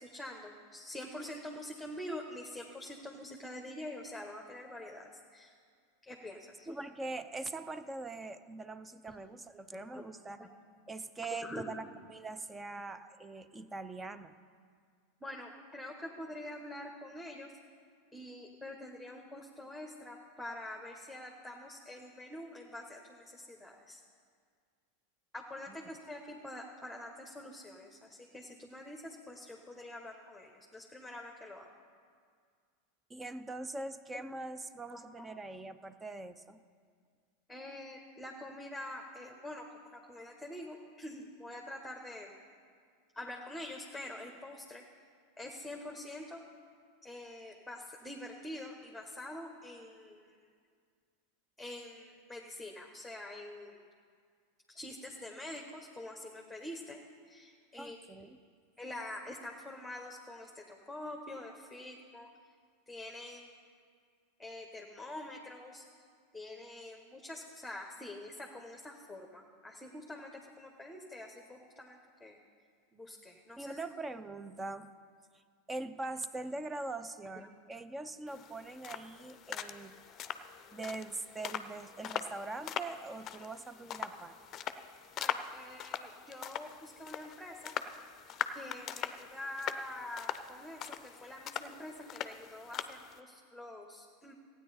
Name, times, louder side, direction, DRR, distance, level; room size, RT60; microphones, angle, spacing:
voice 1, 0.0-5.5 6.0-6.7 9.7-10.0 10.4-10.5 11.4-11.7 12.7-12.8 15.2-17.5 18.1-24.0 25.3-31.7 34.1-34.2 34.9-35.3 37.5-39.7 39.9-42.3 43.1-44.8 45.4-46.4 47.0-50.4 51.6-53.8 54.8-57.0 57.3-58.0 58.8-62.3 62.9-63.5 64.4-65.8 66.3-72.4 72.9-73.7 77.4-77.5 85.2-87.8 88.5-94.3, left 1 dB, 5° left, 1 dB, 1.1 m, -46 dB
voice 2, 6.7-10.4 10.9-14.4 25.7-25.8 33.1-36.6 57.8-58.4 73.6-74.9 75.7-79.9 80.7-84.3, right 2 dB, 15° right, 12 dB, 0.6 m, -42 dB
sound 1, 78.3-93.2, left 9 dB, 35° left, 0.6 m, -42 dB
15.5 x 9.3 x 4.3 m, 2.1 s
hypercardioid pair, 90°, 0 cm